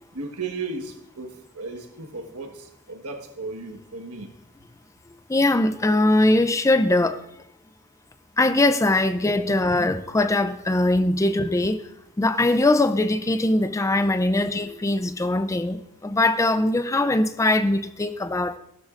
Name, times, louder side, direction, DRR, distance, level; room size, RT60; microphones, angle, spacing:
voice 1, 0.1-4.3, right 3 dB, 90° right, 1.4 m, -35 dB
voice 2, 5.3-7.2 8.4-11.8 12.2-18.6, left 2 dB, 15° left, 0.4 m, -21 dB
15.0 x 13.0 x 2.5 m
head